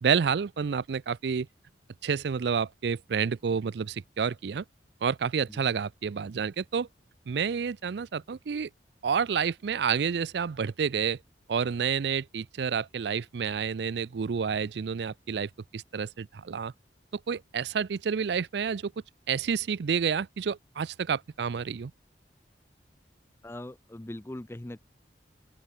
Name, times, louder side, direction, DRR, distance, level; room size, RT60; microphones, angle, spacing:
voice 1, 0.0-1.5 2.0-4.6 5.0-6.9 7.3-8.7 9.0-11.2 11.5-16.7 17.3-18.9 19.3-21.9, right 6 dB, 70° right, 0.4 m, -29 dB
voice 2, 23.4-24.8, left 1 dB, 15° left, 0.5 m, -40 dB
open air
head